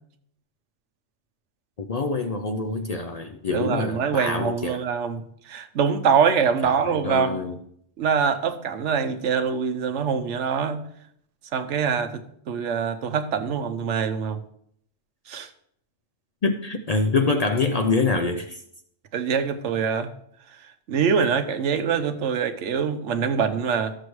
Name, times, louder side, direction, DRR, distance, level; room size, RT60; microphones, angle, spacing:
voice 1, 1.8-4.8 6.9-7.6 16.4-18.6, left 4 dB, 50° left, 0.5 m, -25 dB
voice 2, 3.5-7.5 8.0-10.8 11.5-14.4 15.3-15.5 19.1-20.1 20.9-23.9, right 6 dB, 85° right, 1.1 m, -24 dB
13.0 x 6.6 x 3.1 m
omnidirectional pair, 1.2 m